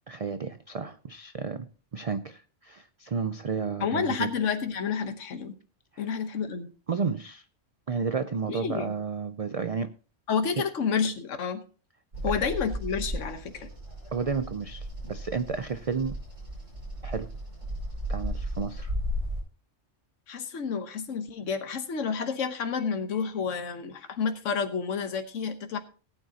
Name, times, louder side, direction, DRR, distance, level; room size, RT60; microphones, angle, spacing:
voice 1, 0.1-1.7 1.9-4.3 5.9-6.1 6.9-7.4 7.9-9.9 10.6-10.7 14.1-16.1 17.0-17.3 18.1-18.9, right 5 dB, 50° right, 10 dB, 0.4 m, -32 dB
voice 2, 3.8-5.5 6.0-6.7 8.5-8.9 10.3-11.6 12.2-13.7 20.3-25.8, left 6 dB, 75° left, 7 dB, 1.4 m, -30 dB
Bird vocalization bird call bird song, 12.1-19.4, equal, 80° right, 6.1 m, -35 dB
18.0 x 9.1 x 2.8 m, 0.38 s
omnidirectional pair, 1.3 m